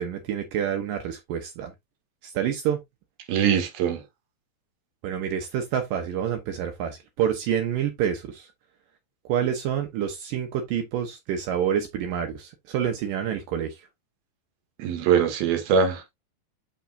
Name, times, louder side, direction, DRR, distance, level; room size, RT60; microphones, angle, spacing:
voice 1, 0.0-1.7 2.2-2.8 5.0-8.5 9.3-13.8, right 9 dB, 75° right, 2.5 m, -28 dB
voice 2, 3.3-4.0 14.8-16.1, right 7 dB, 90° right, 3.3 m, -22 dB
7.5 x 5.9 x 2.6 m
omnidirectional pair, 4.2 m